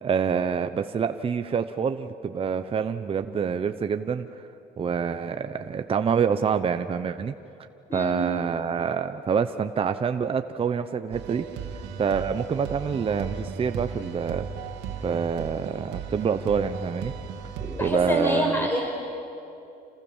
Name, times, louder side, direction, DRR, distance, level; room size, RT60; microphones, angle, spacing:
voice 1, 0.0-4.4 4.8-7.3 7.9-11.5 12.0-14.5 15.0-17.1 17.8-18.7, right 6 dB, 35° right, 8 dB, 0.9 m, -26 dB
voice 2, 7.9-8.3 17.6-18.9, equal, 15° left, 1 dB, 5.8 m, -26 dB
sound 1, 11.1-18.0, right 6 dB, 90° right, 2.3 m, -36 dB
29.0 x 27.5 x 7.3 m, 2.7 s
cardioid pair, 110°, 17 cm